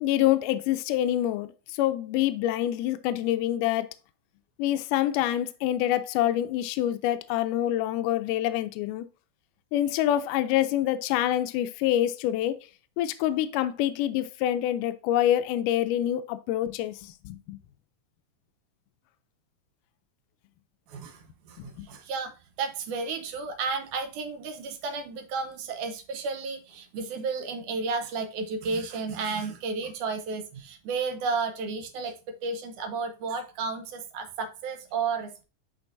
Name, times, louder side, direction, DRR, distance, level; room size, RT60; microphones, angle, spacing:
voice 1, 0.0-3.9 4.6-9.1 9.7-12.6 13.0-17.6 21.8-21.9, left 12 dB, 80° left, 2.1 m, -26 dB
voice 2, 20.9-22.3 22.6-35.4, right 4 dB, 75° right, 2.2 m, -32 dB
9.8 x 4.1 x 2.6 m
omnidirectional pair, 3.8 m